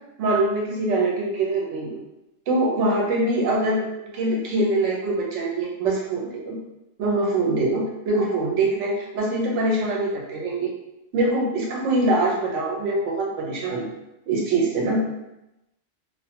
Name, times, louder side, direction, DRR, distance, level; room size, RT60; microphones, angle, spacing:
voice 1, 0.2-2.0 2.5-6.6 7.0-10.7 11.1-13.9 14.3-15.0, right 2 dB, 80° right, -2 dB, 1.0 m, -23 dB
2.5 x 2.3 x 2.7 m, 0.92 s
omnidirectional pair, 1.2 m